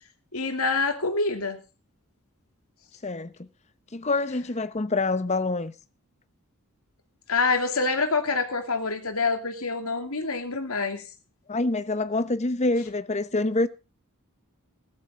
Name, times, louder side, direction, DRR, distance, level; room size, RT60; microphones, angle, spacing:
voice 1, 0.3-1.6 7.3-11.0, left 4 dB, 75° left, 2.7 m, -26 dB
voice 2, 3.0-3.5 3.9-5.7 11.5-13.7, left 2 dB, 30° left, 0.9 m, -26 dB
15.5 x 13.5 x 3.7 m
head